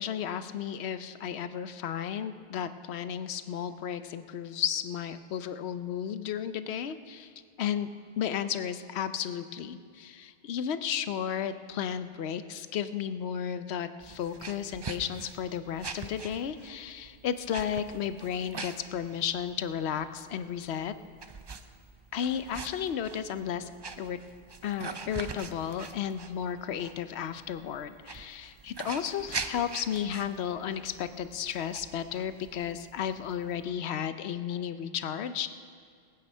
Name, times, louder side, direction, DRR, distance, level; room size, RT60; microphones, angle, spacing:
voice 1, 0.0-7.3 7.6-7.9 8.2-20.9 22.1-23.7 24.0-24.2 24.6-35.5, left 8 dB, 90° left, 11 dB, 0.9 m, -33 dB
sound 1, 14.0-33.7, right 4 dB, 35° right, 0.4 m, -44 dB
19.0 x 9.0 x 5.5 m, 2.2 s
omnidirectional pair, 1.1 m